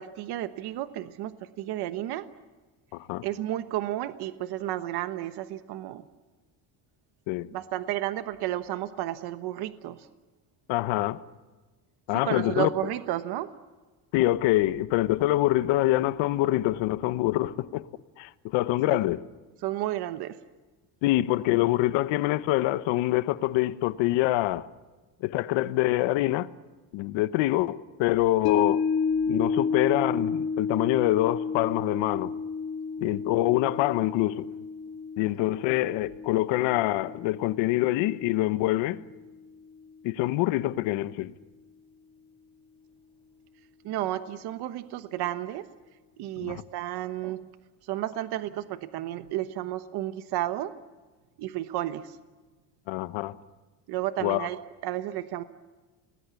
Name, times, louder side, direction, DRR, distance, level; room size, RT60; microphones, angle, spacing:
voice 1, 0.0-2.3 3.2-6.0 7.5-10.0 12.1-13.5 18.9-19.0 19.6-20.4 43.8-45.6 46.2-47.5 47.9-50.7 51.4-52.1 53.9-55.4, right 14 dB, 55° right, 1.2 m, -32 dB
voice 2, 2.9-3.3 7.3-7.5 10.7-11.2 12.1-12.7 14.1-17.9 18.2-19.2 21.0-24.7 25.2-26.5 26.9-28.8 29.3-32.3 33.0-34.5 35.2-39.0 40.0-41.3 46.4-46.6 52.9-53.4 54.2-54.5, left 16 dB, 80° left, 1.1 m, -25 dB
sound 1, 28.4-38.8 39.2-39.3, left 5 dB, 55° left, 2.3 m, -31 dB
30.0 x 20.0 x 8.3 m
cardioid pair, 170°, 45 cm